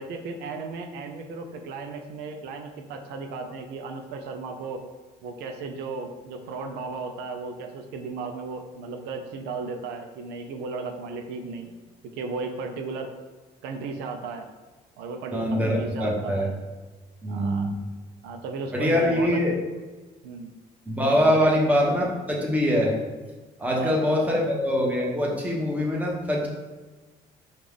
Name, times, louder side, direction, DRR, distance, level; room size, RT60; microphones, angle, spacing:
voice 1, 0.0-4.8 5.2-11.7 12.2-13.1 13.6-14.5 15.0-16.5 17.3-17.7 18.2-19.4 20.2-20.5 21.3-21.5 23.7-24.0 24.3-24.4, right 4 dB, 90° right, 5 dB, 0.5 m, -35 dB
voice 2, 15.3-16.5 17.2-17.8 18.7-19.5 20.9-22.9 23.6-26.5, equal, 10° right, -3 dB, 0.9 m, -23 dB
5.1 x 2.4 x 3.5 m, 1.3 s
cardioid pair, 110°, 17 cm